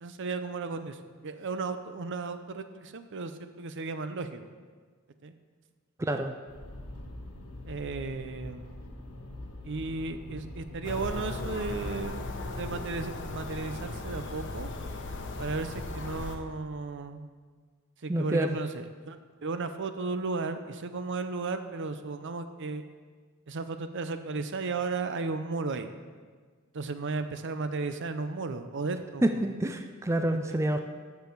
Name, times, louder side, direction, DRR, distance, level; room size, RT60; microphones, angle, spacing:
voice 1, 0.0-4.5 5.2-5.3 7.7-8.8 9.6-14.7 15.4-17.3 18.0-22.8 23.5-25.9 26.7-29.4 30.3-30.6, right 3 dB, 60° right, 9 dB, 0.6 m, -35 dB
voice 2, 6.0-6.3 18.1-18.5 29.2-30.8, right 1 dB, 15° right, 6 dB, 0.4 m, -27 dB
sound 1, 6.5-13.1, left 1 dB, 85° left, 1.3 m, -43 dB
sound 2, 10.8-16.4, left 2 dB, 60° left, 0.9 m, -37 dB
12.0 x 6.9 x 4.7 m, 1.5 s
head